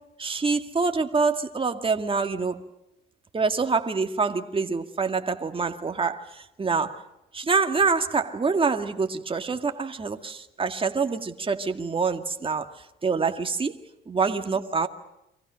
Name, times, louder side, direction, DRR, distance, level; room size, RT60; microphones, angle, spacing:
voice 1, 0.0-2.6 3.3-7.0 7.3-12.7 13.0-14.9, right 4 dB, 25° right, 2.1 m, -26 dB
30.0 x 25.0 x 6.4 m
cardioid pair, 90°, 20 cm